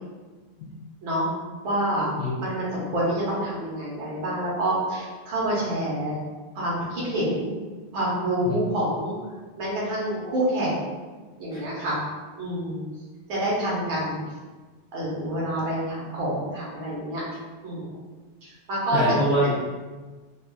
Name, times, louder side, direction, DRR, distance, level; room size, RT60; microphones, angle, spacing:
voice 1, 1.6-2.1 2.4-6.2 6.6-7.5 7.9-9.1 9.6-10.8 11.4-12.0 12.4-12.8 13.3-14.2 14.9-17.2 17.6-18.0 18.4-19.0, right 1 dB, 70° right, -6 dB, 1.8 m, -27 dB
voice 2, 18.9-19.5, equal, 65° left, -11 dB, 0.6 m, -24 dB
4.6 x 2.5 x 2.3 m, 1.3 s
omnidirectional pair, 2.4 m